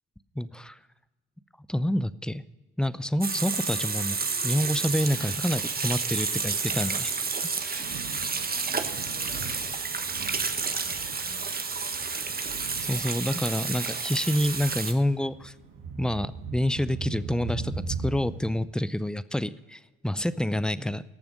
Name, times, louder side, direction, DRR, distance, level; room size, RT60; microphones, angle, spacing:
voice 1, 0.4-0.8 1.7-2.4 2.8-4.2 4.4-7.2 7.6-8.1 12.8-15.5 16.0-21.0, left 1 dB, ahead, 16 dB, 0.5 m, -28 dB
Water tap faucet / Sink (filling or washing), 3.2-14.9, right 4 dB, 25° right, 1.4 m, -30 dB
Thunder, 5.8-18.5, right 3 dB, 70° right, 2.5 m, -40 dB
voice 2, 7.7-11.6, right 3 dB, 90° right, -2 dB, 5.0 m, -52 dB
18.5 x 7.1 x 5.2 m, 1.1 s
hypercardioid pair, 60°, 35 cm